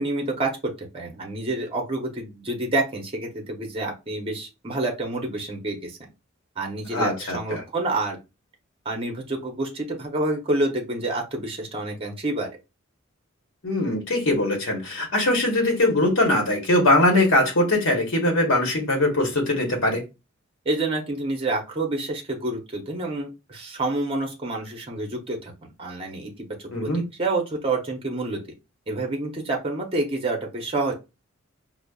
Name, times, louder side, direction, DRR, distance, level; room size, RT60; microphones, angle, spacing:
voice 1, 0.0-6.1 6.6-8.2 8.8-12.5 20.6-25.5 25.8-28.4 28.9-30.9, right 2 dB, 25° right, 0.7 m, -28 dB
voice 2, 6.9-7.6 13.6-20.0 26.7-27.0, left 1 dB, 65° left, 1.0 m, -21 dB
4.9 x 2.0 x 2.2 m
head